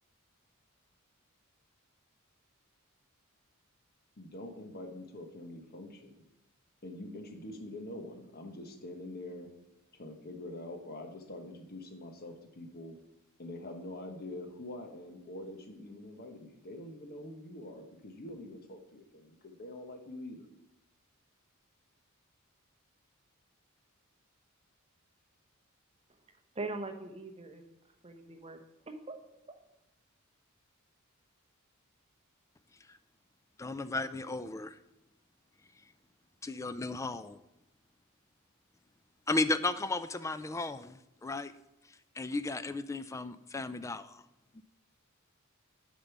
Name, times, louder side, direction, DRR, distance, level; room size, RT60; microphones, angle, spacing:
voice 1, 4.2-6.2 6.8-9.5 9.9-13.0 13.4-20.5, left 1 dB, 45° left, 4 dB, 1.2 m, -45 dB
voice 2, 26.6-27.6 28.0-28.6 28.9-29.2 29.5-29.6, right 3 dB, 30° right, 6 dB, 0.8 m, -41 dB
voice 3, 33.6-34.8 36.4-37.4 39.3-41.5 42.2-44.2 44.5-44.6, left 2 dB, 15° left, 13 dB, 0.3 m, -34 dB
6.8 x 5.3 x 7.2 m, 0.89 s
head